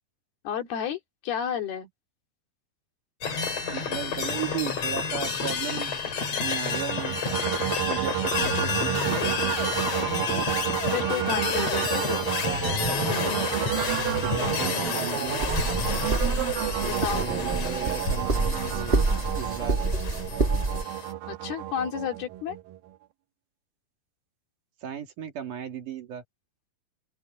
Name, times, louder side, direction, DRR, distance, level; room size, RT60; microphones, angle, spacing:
voice 1, 0.4-1.9 10.9-12.3 16.8-17.3 21.3-22.6, left 9 dB, 85° left, 4.7 m, -31 dB
sound 1, 3.2-21.1, left 5 dB, 45° left, 4.3 m, -30 dB
voice 2, 3.7-5.9 6.4-7.2 7.9-9.6 14.2-15.4 16.8-19.0 19.3-19.8 24.8-26.2, right 9 dB, 60° right, 3.3 m, -36 dB
sound 2, 6.7-22.9, right 14 dB, 75° right, 2.6 m, -31 dB
sound 3, 15.4-20.8, right 3 dB, 35° right, 0.9 m, -28 dB
open air
omnidirectional pair, 4.3 m